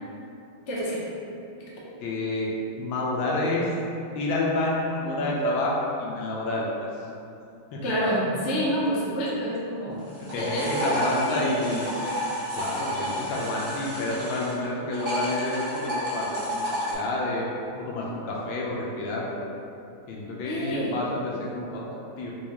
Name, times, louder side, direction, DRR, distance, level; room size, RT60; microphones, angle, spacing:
voice 1, 0.7-1.1 1.6-1.7 7.8-10.0 10.4-11.5 11.8-11.9 20.4-21.0, equal, 55° left, -7 dB, 0.7 m, -28 dB
voice 2, 2.0-2.5 2.8-3.7 4.1-6.7 7.7-7.8 9.9-11.9 12.6-17.4 17.8-19.5 20.1-22.3, left 2 dB, 80° left, -4 dB, 1.4 m, -29 dB
sound 1, 10.0-14.6 14.9-16.9, equal, 50° right, 0.7 m, -31 dB
4.6 x 2.3 x 2.9 m, 2.7 s
omnidirectional pair, 2.2 m